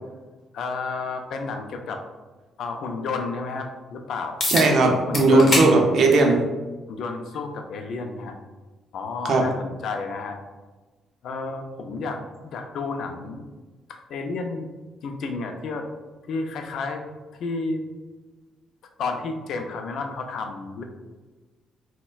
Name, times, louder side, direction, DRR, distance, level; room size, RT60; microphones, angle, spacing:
voice 1, 0.5-2.0 2.6-4.4 5.1-5.8 6.9-8.4 8.9-10.4 11.2-13.4 13.9-14.7 15.0-15.9 16.3-17.0 17.4-17.8 19.0-20.8, left 3 dB, 75° left, 5 dB, 0.3 m, -31 dB
sound 1, 4.4-4.7 5.1-5.7 6.1-6.3 7.3-7.4 12.3-12.4, left 2 dB, 40° left, 0.7 m, -24 dB
voice 2, 4.5-6.4 9.2-9.4, right 2 dB, 65° right, 2 dB, 0.5 m, -17 dB
4.0 x 2.1 x 2.2 m, 1.2 s
cardioid pair, 90°, 0 cm